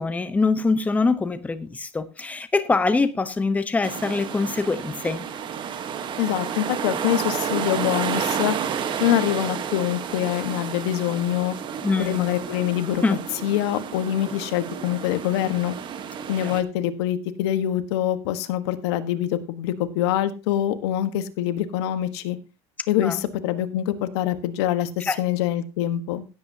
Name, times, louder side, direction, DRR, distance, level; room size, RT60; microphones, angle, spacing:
voice 1, 0.0-5.2 11.8-12.3 13.0-13.2 16.4-16.5 23.0-23.2 25.1-25.2, left 3 dB, 10° left, 0.9 m, -24 dB
sound 1, 3.8-16.6, right 8 dB, 35° right, 1.2 m, -31 dB
voice 2, 6.2-8.5 9.0-11.6 12.0-15.8 16.3-22.4 22.9-26.3, left 12 dB, 80° left, 1.3 m, -25 dB
16.0 x 8.5 x 2.8 m
supercardioid pair, 135°, 14 cm